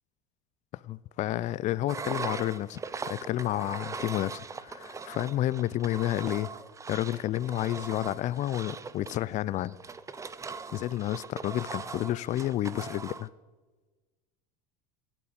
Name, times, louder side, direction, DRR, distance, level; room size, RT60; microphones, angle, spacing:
voice 1, 0.7-2.8 3.1-6.5 6.9-9.7 10.7-13.3, left 14 dB, 40° left, 0.4 m, -30 dB
Engine, 1.9-13.3, right 5 dB, 15° right, 0.6 m, -40 dB
13.5 x 9.0 x 8.0 m
supercardioid pair, 105°, 19 cm